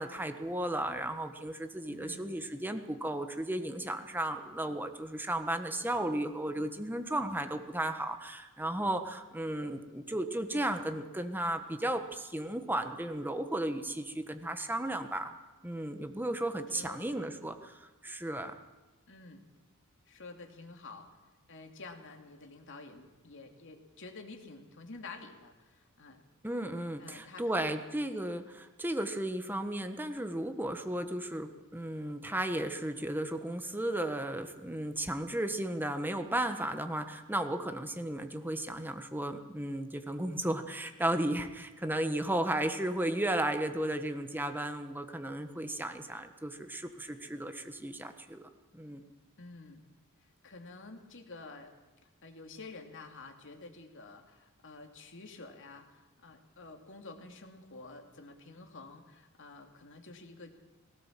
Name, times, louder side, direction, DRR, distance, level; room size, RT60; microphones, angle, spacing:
voice 1, 0.0-15.3 15.6-18.5 26.4-48.4 48.7-49.0, right 1 dB, 10° right, 7 dB, 1.3 m, -34 dB
voice 2, 1.9-2.4 16.7-17.0 19.1-19.4 20.1-21.1 21.5-26.2 27.0-27.7 41.1-41.3 49.4-49.8 50.4-51.7 52.2-60.5, left 3 dB, 60° left, 4 dB, 2.6 m, -49 dB
19.5 x 18.0 x 7.5 m, 1.2 s
head